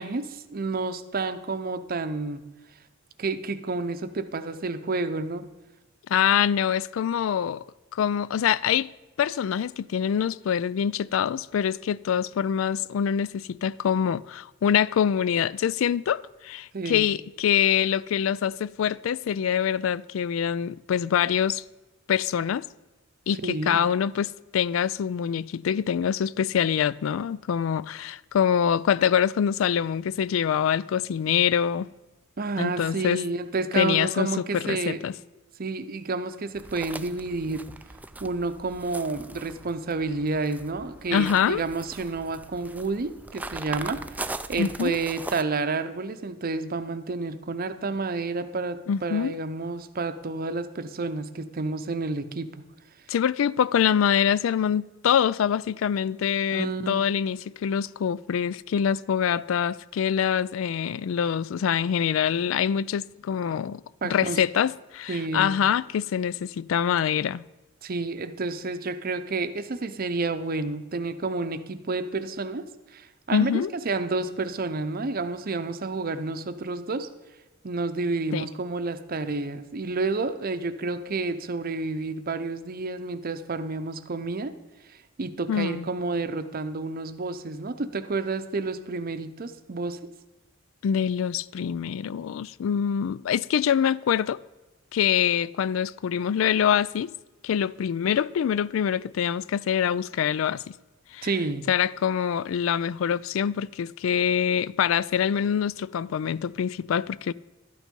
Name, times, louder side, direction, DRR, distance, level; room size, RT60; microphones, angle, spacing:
voice 1, 0.0-2.4 3.2-5.5 16.7-17.1 23.4-23.8 32.4-35.0 35.6-37.7 38.2-52.6 56.5-57.0 64.0-64.4 65.1-65.5 67.8-72.6 72.9-77.1 77.6-84.5 85.2-90.0 101.2-101.6, right 3 dB, 45° right, 0.7 m, -30 dB
voice 2, 6.1-7.6 7.9-8.9 9.2-21.6 22.1-22.6 23.3-31.9 32.6-33.2 33.8-35.1 41.1-41.6 44.6-45.0 48.9-49.3 53.1-67.4 73.3-73.7 78.3-78.5 85.5-85.9 90.8-94.4 94.9-97.1 97.4-100.7 101.1-101.3 101.7-107.3, left 8 dB, 80° left, 0.3 m, -25 dB
sound 1, 36.5-45.4, right 2 dB, 10° right, 0.4 m, -40 dB
12.0 x 9.1 x 5.2 m
head